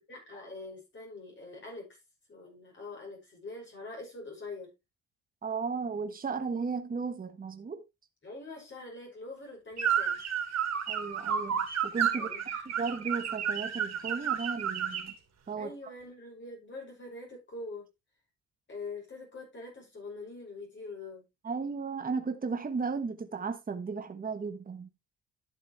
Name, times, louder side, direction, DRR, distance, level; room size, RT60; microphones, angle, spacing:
voice 1, 0.1-2.0 2.3-4.7 8.2-10.2 12.1-12.8 15.6-17.8 18.7-21.3, left 3 dB, 40° left, 6.1 m, -44 dB
voice 2, 5.4-7.8 10.9-12.3 12.8-15.1 15.5-15.7 21.4-24.9, right 5 dB, 30° right, 1.3 m, -35 dB
sound 1, 9.8-15.1, right 8 dB, 60° right, 2.6 m, -31 dB
11.5 x 7.2 x 3.2 m
cardioid pair, 90°, 30 cm